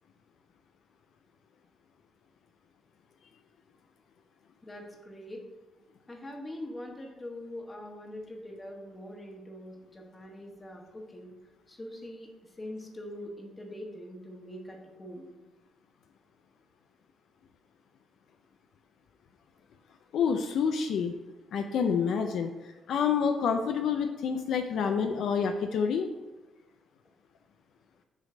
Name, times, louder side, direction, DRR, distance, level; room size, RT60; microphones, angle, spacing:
voice 1, 4.6-5.4 6.1-11.3 11.7-15.3, left 1 dB, 20° left, 1 dB, 1.4 m, -43 dB
voice 2, 20.1-21.1 21.5-26.1, left 6 dB, 70° left, 5 dB, 0.4 m, -28 dB
7.5 x 3.2 x 5.0 m, 1.2 s
cardioid pair, 90°, 0 cm